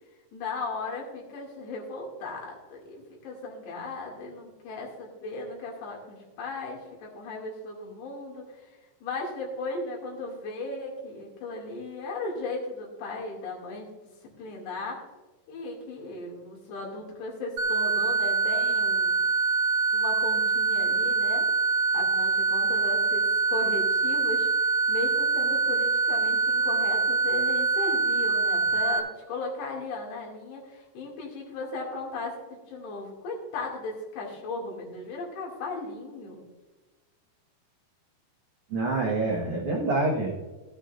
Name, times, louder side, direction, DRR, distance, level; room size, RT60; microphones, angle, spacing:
voice 1, 0.3-8.7 9.0-13.9 14.4-15.0 15.5-19.2 19.9-21.4 21.9-24.5 24.9-36.4, left 3 dB, 70° left, -2 dB, 4.5 m, -36 dB
sound 1, 17.6-29.0, right 4 dB, 50° right, 1.6 m, -24 dB
voice 2, 38.7-40.4, right 2 dB, 75° right, -3 dB, 1.3 m, -26 dB
16.0 x 9.8 x 2.6 m, 1.2 s
omnidirectional pair, 5.3 m